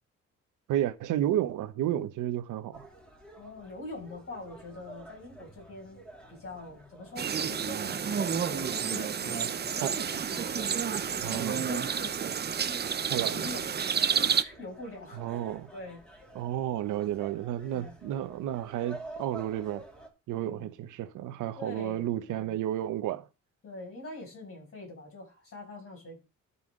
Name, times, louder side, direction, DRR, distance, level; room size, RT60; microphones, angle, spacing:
voice 1, 0.7-2.9 9.8-10.0 11.2-11.6 13.1-13.5 15.1-15.7 16.3-19.8 20.3-23.3, right 12 dB, 85° right, 1.0 m, -32 dB
sound 1, 2.7-20.1, right 1 dB, 5° left, 2.9 m, -51 dB
voice 2, 3.4-6.0 6.3-12.3 12.6-15.5 15.7-16.0 17.7-18.0 20.3-20.7 21.6-22.6 23.6-26.2, left 2 dB, 45° left, 6.4 m, -44 dB
sound 2, 7.2-14.4, right 7 dB, 35° right, 0.7 m, -30 dB
12.5 x 5.6 x 3.8 m
cardioid pair, 90°, 30 cm